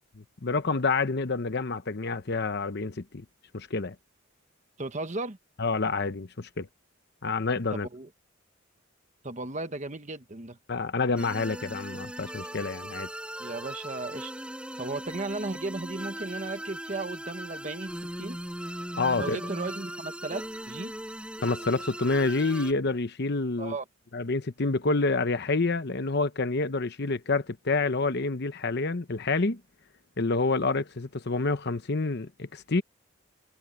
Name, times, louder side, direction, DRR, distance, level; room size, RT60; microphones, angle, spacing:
voice 1, 0.4-3.2 3.5-3.9 5.6-6.7 7.2-7.9 10.7-13.1 19.0-19.4 21.4-23.7 24.1-29.6 30.2-32.8, left 3 dB, 55° left, 0.9 m, -28 dB
voice 2, 4.8-5.4 7.7-8.1 9.2-10.6 13.4-14.3 14.8-18.4 19.2-20.9 23.6-23.8, right 3 dB, 35° right, 1.2 m, -35 dB
sound 1, 11.2-22.7, equal, 5° right, 4.7 m, -39 dB
head